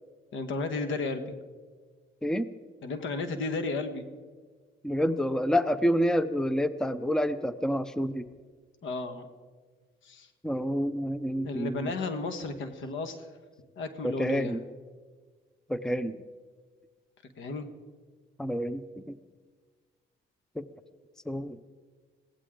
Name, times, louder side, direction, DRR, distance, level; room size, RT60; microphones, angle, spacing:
voice 1, 0.3-1.3 2.8-4.0 8.8-9.2 10.0-10.3 11.4-13.3 13.8-14.6 17.4-17.7, left 3 dB, 75° left, 9 dB, 1.5 m, -33 dB
voice 2, 4.8-8.3 10.4-11.9 14.0-14.6 15.7-16.2 18.4-19.2 20.6-20.7 21.3-21.6, equal, 5° left, 14 dB, 0.6 m, -28 dB
22.5 x 16.5 x 3.8 m, 1.5 s
cardioid pair, 90°, 20 cm